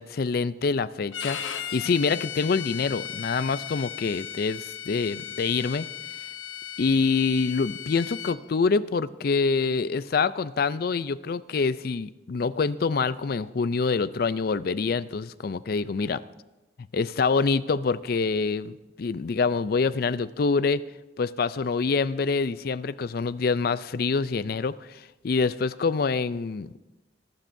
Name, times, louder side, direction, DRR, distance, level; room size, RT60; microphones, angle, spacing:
voice 1, 0.0-5.9 6.8-16.2 16.9-20.8 21.2-26.7, left 4 dB, 55° left, 16 dB, 0.4 m, -26 dB
Bowed string instrument, 1.1-8.4, left 9 dB, 85° left, 0.8 m, -36 dB
26.0 x 12.0 x 2.7 m, 1.0 s
head